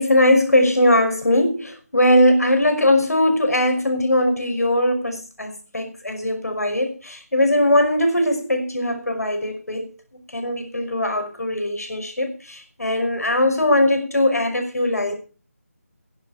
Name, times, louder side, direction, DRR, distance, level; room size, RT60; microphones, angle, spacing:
voice 1, 0.0-9.9 10.3-15.1, left 1 dB, 85° left, 5.6 m, -20 dB
11.5 x 11.0 x 5.8 m
figure-of-eight pair, 165°, 8 cm